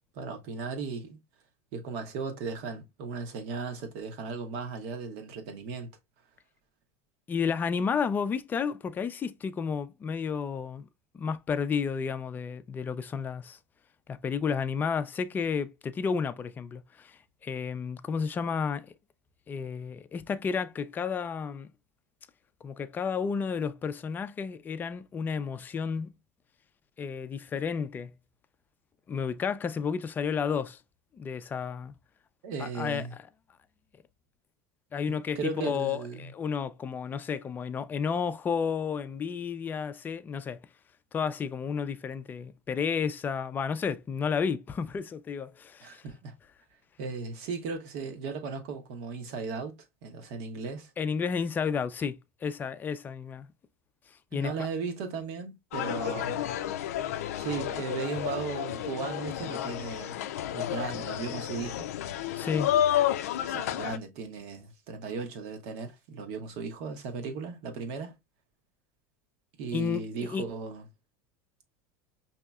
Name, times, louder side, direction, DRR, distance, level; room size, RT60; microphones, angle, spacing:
voice 1, 0.1-1.2 1.7-5.9 32.4-33.1 35.1-36.3 45.8-46.4 47.0-50.9 54.3-56.4 57.4-60.2 60.5-61.9 63.4-68.1 69.6-70.8, right 4 dB, 65° right, 1.0 m, -36 dB
voice 2, 7.3-10.9 11.1-13.6 14.1-18.9 19.5-21.7 22.6-26.1 27.0-28.1 29.1-30.8 31.1-31.9 32.6-33.1 34.9-40.6 41.1-46.0 51.0-53.5 54.3-54.5 62.4-62.7 69.7-70.0 70.3-70.4, left 6 dB, 25° left, 0.4 m, -32 dB
sound 1, 55.7-64.0, left 11 dB, 85° left, 0.4 m, -31 dB
5.2 x 2.8 x 2.3 m
supercardioid pair, 110°, 8 cm